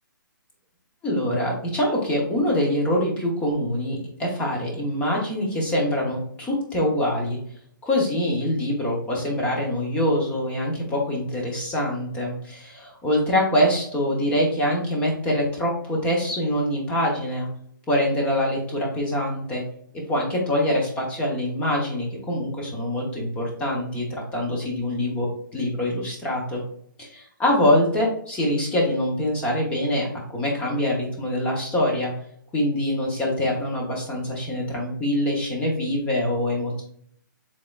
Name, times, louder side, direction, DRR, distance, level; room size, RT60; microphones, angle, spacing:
voice 1, 1.0-7.4 7.8-17.5 17.9-19.6 20.1-24.0 24.3-25.3 25.5-26.6 27.0-32.1 32.5-36.8, left 1 dB, 10° left, -2 dB, 0.9 m, -24 dB
4.7 x 3.6 x 2.4 m, 0.64 s
hypercardioid pair, 155°, 11 cm